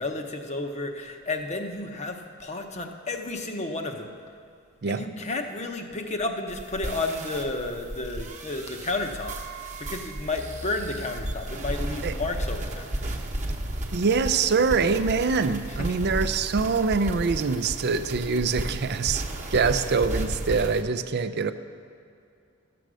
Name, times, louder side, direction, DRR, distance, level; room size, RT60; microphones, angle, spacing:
voice 1, 0.0-4.1 4.9-12.8 15.7-16.1, left 2 dB, 35° left, 5 dB, 0.9 m, -32 dB
sound 1, 6.5-20.8, right 1 dB, 35° right, 1.0 m, -34 dB
voice 2, 13.9-19.2 19.5-21.5, right 4 dB, 50° right, 11 dB, 0.5 m, -24 dB
13.0 x 7.7 x 6.2 m, 2.5 s
head